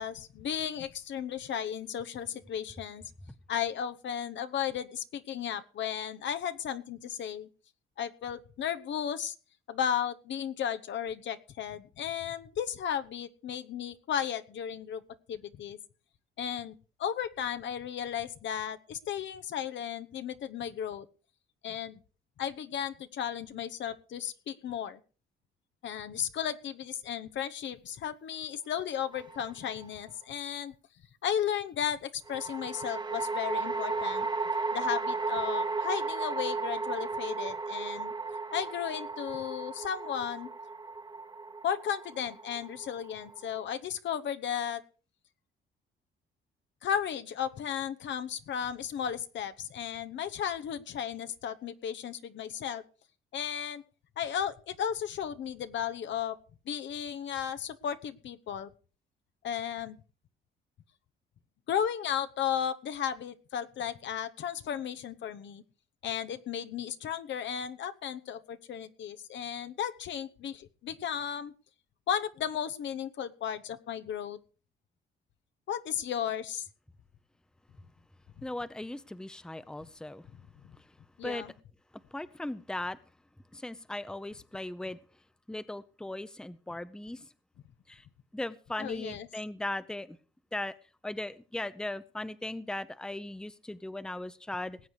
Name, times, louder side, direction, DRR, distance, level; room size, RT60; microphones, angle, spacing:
voice 1, 0.0-3.0 3.5-7.5 8.0-9.3 9.7-15.0 15.3-15.8 16.4-16.7 17.0-21.1 21.6-22.0 22.4-25.0 25.8-30.7 31.2-34.3 34.7-38.1 38.5-40.5 41.6-44.8 46.8-52.8 53.3-53.8 54.2-56.4 56.7-58.7 59.4-60.0 61.7-65.6 66.0-71.5 72.1-74.4 75.7-76.7 81.2-81.5 88.8-89.3, left 9 dB, 65° left, 10 dB, 1.0 m, -34 dB
sound 1, 29.1-29.8 32.3-43.6, right 3 dB, 20° right, 1.1 m, -35 dB
voice 2, 78.4-80.3 81.2-81.4 82.1-83.0 83.5-85.0 85.5-87.3 87.9-88.0 88.3-90.2 90.5-90.7 91.0-94.8, left 1 dB, 5° left, 14 dB, 0.7 m, -38 dB
19.5 x 8.0 x 4.8 m, 0.37 s
cardioid pair, 90°, 20 cm